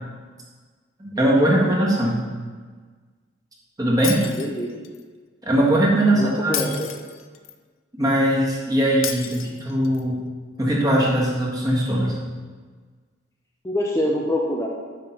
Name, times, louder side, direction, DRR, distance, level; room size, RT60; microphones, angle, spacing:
voice 1, 1.0-2.2 3.8-4.2 5.4-6.7 8.0-10.2 10.6-12.2, right 1 dB, 20° right, -4 dB, 1.5 m, -20 dB
Shatter, 4.0-5.0 6.5-7.5 9.0-10.0, left 10 dB, 80° left, 0.5 m, -32 dB
voice 2, 4.4-4.7 6.1-6.9 13.6-14.7, left 1 dB, 15° left, -2 dB, 0.6 m, -25 dB
8.4 x 3.6 x 5.8 m, 1.5 s
head